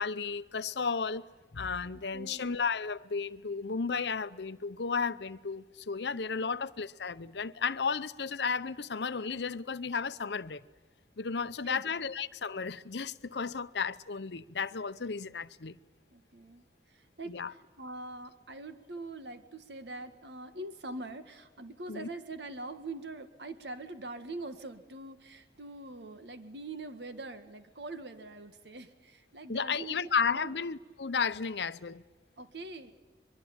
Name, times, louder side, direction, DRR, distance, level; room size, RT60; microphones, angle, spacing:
voice 1, 0.0-10.6 11.2-15.8 17.3-17.5 21.9-22.1 29.5-32.0, left 5 dB, 75° left, 0.8 m, -33 dB
voice 2, 1.9-2.6 6.4-6.6 11.6-11.8 16.1-30.5 32.4-32.9, right 2 dB, 80° right, 1.7 m, -44 dB
23.5 x 23.0 x 8.9 m
head